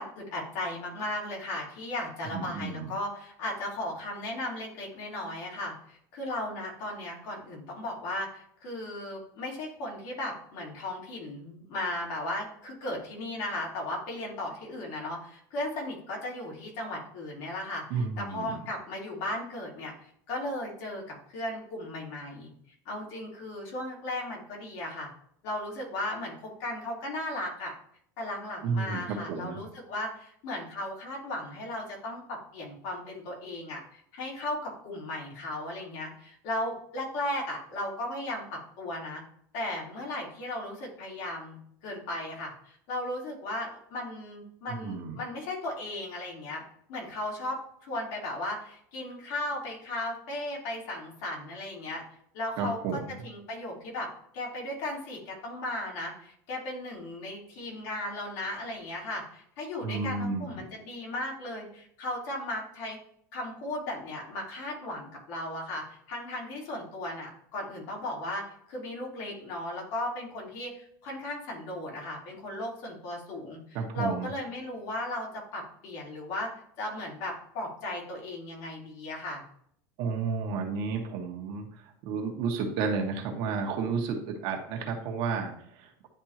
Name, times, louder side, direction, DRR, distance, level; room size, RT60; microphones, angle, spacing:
voice 1, 0.0-22.5 22.8-25.1 25.4-27.7 28.2-38.4 38.8-39.2 39.5-41.6 41.8-46.6 46.9-52.0 52.3-54.1 54.3-63.0 63.3-75.3 75.5-76.5 76.8-79.4, left 1 dB, 60° left, -2 dB, 2.8 m, -36 dB
voice 2, 2.3-2.9 17.9-18.5 28.6-29.6 44.7-45.2 52.6-53.0 59.8-60.7 73.7-74.3 80.0-86.1, right 5 dB, 50° right, 2 dB, 1.4 m, -32 dB
10.5 x 3.5 x 2.9 m, 0.66 s
supercardioid pair, 160°, 11 cm